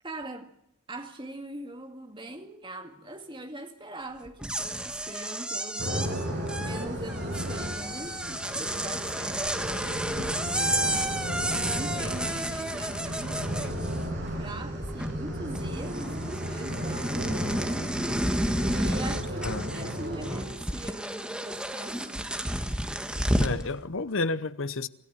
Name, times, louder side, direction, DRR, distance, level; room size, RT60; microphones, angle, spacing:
voice 1, 0.0-0.5 0.9-6.2 6.6-11.0 11.5-13.9 14.4-17.8 18.6-22.4, right 1 dB, 20° right, 2.2 m, -42 dB
sound 1, 4.3-14.3 14.6-15.3 15.5-23.6, right 1 dB, 5° right, 1.5 m, -31 dB
sound 2, 5.8-20.5, equal, 50° right, 6.7 m, -34 dB
voice 2, 23.4-24.9, left 3 dB, 60° left, 0.8 m, -30 dB
26.0 x 14.5 x 8.8 m
head